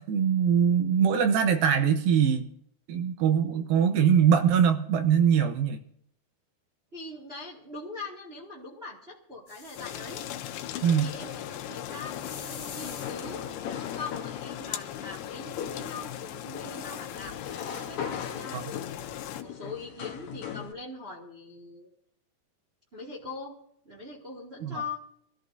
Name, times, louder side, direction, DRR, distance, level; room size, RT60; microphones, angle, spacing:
voice 1, 0.0-2.5 2.9-5.8 10.8-11.1 18.5-18.7 24.6-24.8, right 8 dB, 75° right, 7 dB, 2.6 m, -22 dB
voice 2, 6.9-10.2 11.0-13.5 14.0-17.3 17.9-21.9 22.9-23.5 23.8-25.0, left 3 dB, 20° right, -4 dB, 1.9 m, -42 dB
sound 1, 9.5-10.7 11.8-13.1 15.3-15.4, left 5 dB, 40° left, 2.3 m, -45 dB
sound 2, 9.8-19.4, left 11 dB, 85° left, 2.7 m, -38 dB
sound 3, 12.9-20.7, left 8 dB, 65° left, 2.1 m, -40 dB
25.0 x 14.0 x 2.7 m, 0.69 s
omnidirectional pair, 4.6 m